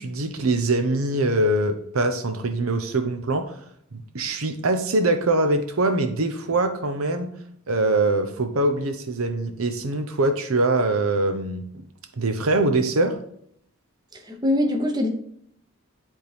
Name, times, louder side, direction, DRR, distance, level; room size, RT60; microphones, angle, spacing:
voice 1, 0.0-3.6 3.9-7.3 7.7-11.8 12.2-13.2, right 2 dB, 85° right, 7 dB, 0.8 m, -23 dB
voice 2, 14.1-15.1, left 1 dB, 20° right, 3 dB, 0.9 m, -23 dB
10.5 x 3.7 x 3.3 m, 0.68 s
head